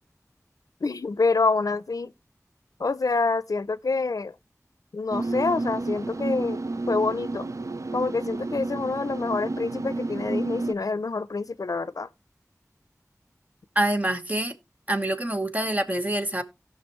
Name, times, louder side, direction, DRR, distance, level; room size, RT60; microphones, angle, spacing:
voice 1, 0.8-2.1 2.8-4.3 4.9-6.6 6.9-7.5 7.9-12.1, left 3 dB, 80° left, 0.5 m, -26 dB
sound 1, 5.1-10.7, right 2 dB, 60° right, 0.5 m, -31 dB
voice 2, 13.7-14.5 14.9-16.4, right 1 dB, 25° right, 1.2 m, -26 dB
17.0 x 5.7 x 3.0 m
wide cardioid pair, 55°, 6 cm